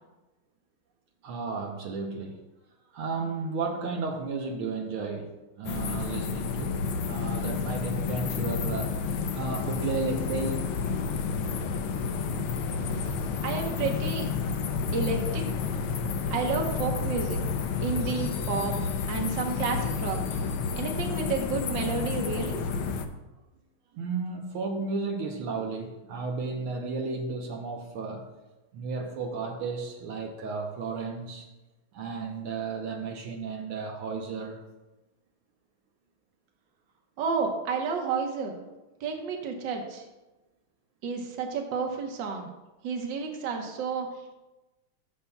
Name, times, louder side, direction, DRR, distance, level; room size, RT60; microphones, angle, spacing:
voice 1, 1.2-2.4 2.9-6.8 7.0-10.7 23.9-28.3 28.7-31.4 31.9-34.6, right 4 dB, 80° right, 1 dB, 1.7 m, -33 dB
sound 1, 5.6-23.1, left 5 dB, 75° left, 1.5 m, -30 dB
voice 2, 13.4-14.3 14.9-15.5 16.3-17.5 17.8-18.7 19.1-20.2 20.7-22.6 37.2-38.5 39.0-40.0 41.0-42.5 42.8-44.1, right 5 dB, 60° right, 2 dB, 1.7 m, -30 dB
15.0 x 6.9 x 2.3 m, 1.1 s
omnidirectional pair, 2.4 m